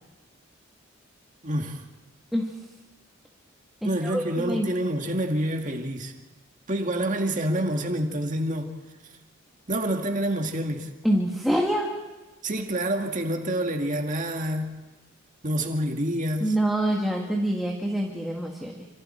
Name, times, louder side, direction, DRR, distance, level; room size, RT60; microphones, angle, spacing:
voice 1, 1.4-1.8 3.8-6.1 6.7-8.7 9.7-10.9 12.4-14.7 15.4-16.6, right 1 dB, 35° right, 2.0 m, -27 dB
voice 2, 3.8-4.7 11.0-11.9 16.4-18.9, right 1 dB, ahead, 1.7 m, -26 dB
28.5 x 26.5 x 4.5 m
head